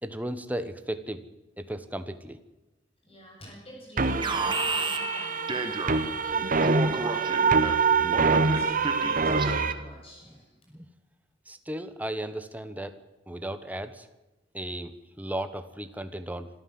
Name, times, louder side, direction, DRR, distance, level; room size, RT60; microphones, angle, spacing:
voice 1, 0.0-1.2 1.6-2.4 10.7-10.9 11.5-13.0 13.3-14.1 14.5-16.5, right 1 dB, 10° right, 10 dB, 1.3 m, -35 dB
voice 2, 3.0-10.6, equal, 30° left, -2 dB, 7.9 m, -49 dB
sound 1, 4.0-9.7, right 4 dB, 45° right, 1.2 m, -25 dB
Alarm, 4.2-6.2 6.6-9.9, right 3 dB, 25° right, 1.6 m, -32 dB
26.0 x 13.5 x 7.8 m, 1.0 s
head